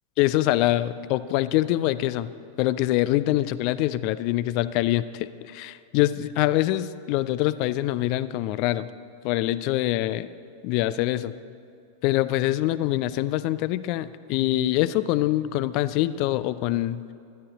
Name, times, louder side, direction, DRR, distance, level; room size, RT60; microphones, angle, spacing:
voice 1, 0.2-2.3 2.6-8.9 9.2-10.3 10.6-11.3 12.0-17.0, left 15 dB, 45° left, 15 dB, 0.3 m, -24 dB
11.5 x 11.5 x 4.1 m, 2.6 s
figure-of-eight pair, 90°, 0 cm